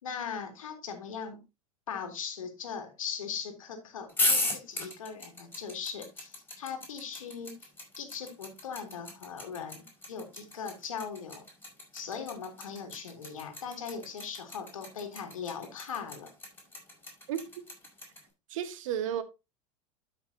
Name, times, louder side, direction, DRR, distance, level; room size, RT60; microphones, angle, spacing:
voice 1, 0.0-1.4 1.9-7.7 8.0-11.5 11.9-16.3, left 6 dB, 90° left, 2.2 m, -39 dB
sound 1, 4.1-18.2, left 2 dB, 15° left, 5.1 m, -34 dB
voice 2, 17.3-17.7 18.5-19.2, right 10 dB, 75° right, 1.3 m, -33 dB
12.5 x 5.9 x 2.7 m
hypercardioid pair, 90°, 17 cm